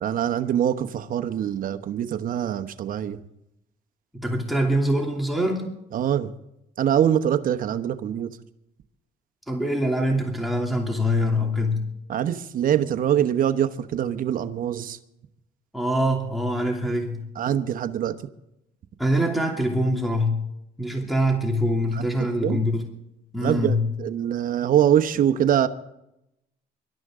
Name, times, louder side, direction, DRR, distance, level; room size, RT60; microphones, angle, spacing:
voice 1, 0.0-3.2 5.9-6.3 6.8-8.3 12.1-15.0 17.3-18.1 21.9-22.0 22.4-22.6 23.4-25.7, right 10 dB, 55° right, 9 dB, 1.1 m, -23 dB
voice 2, 4.1-5.7 9.5-11.9 15.7-17.2 19.0-20.4 20.8-22.8 23.3-23.8, equal, ahead, 1 dB, 2.7 m, -24 dB
24.5 x 12.5 x 3.7 m, 0.83 s
cardioid pair, 110°, 17 cm